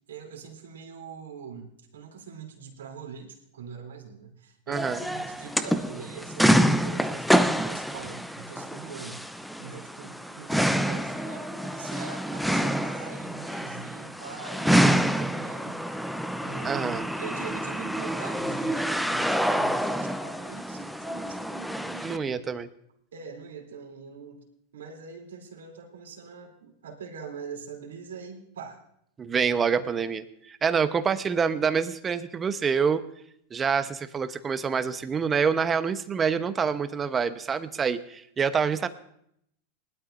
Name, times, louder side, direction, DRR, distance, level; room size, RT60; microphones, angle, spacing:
voice 1, 0.1-9.2 9.6-15.8 16.4-22.4 23.1-24.4 24.7-28.8 29.7-29.9, right 6 dB, 90° right, 1 dB, 3.1 m, -43 dB
sound 1, 4.7-22.2, equal, ahead, 0.6 m, -27 dB
voice 2, 4.7-5.0 16.6-17.0 22.0-22.7 29.2-33.0 33.5-38.9, right 6 dB, 25° right, 10 dB, 0.9 m, -26 dB
20.0 x 12.5 x 2.6 m, 0.72 s
hypercardioid pair, 115°, 0 cm